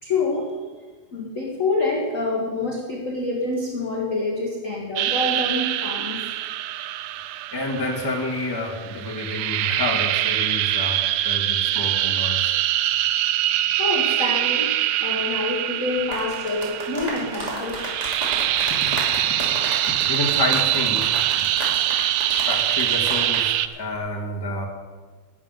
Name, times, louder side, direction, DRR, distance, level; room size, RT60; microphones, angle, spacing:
voice 1, 0.0-0.6 1.1-6.2 13.2-13.3 13.8-14.7 15.0-17.8, left 2 dB, 40° left, -1 dB, 1.3 m, -26 dB
sound 1, 5.0-23.7, right 13 dB, 80° right, 1.6 m, -24 dB
voice 2, 7.5-12.5 18.4-18.5 18.9-19.3 19.9-21.5 22.4-24.7, left 2 dB, 10° left, 0 dB, 1.3 m, -29 dB
sound 2, 16.0-23.5 23.7-24.0, right 1 dB, 15° right, 2.5 m, -32 dB
12.0 x 7.4 x 9.3 m, 1.4 s
omnidirectional pair, 3.3 m